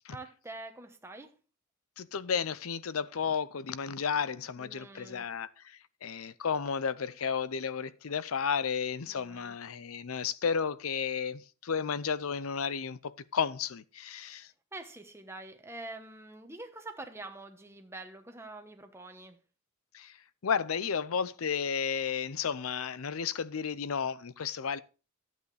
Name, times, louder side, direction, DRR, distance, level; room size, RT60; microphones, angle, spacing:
voice 1, 0.1-1.3 4.6-5.3 9.1-9.6 14.2-14.4 14.7-19.4, right 2 dB, 10° right, 1.1 m, -46 dB
voice 2, 2.0-5.5 6.0-14.5 19.9-20.1 20.4-24.8, left 6 dB, 85° left, 0.6 m, -33 dB
12.0 x 8.1 x 3.3 m
head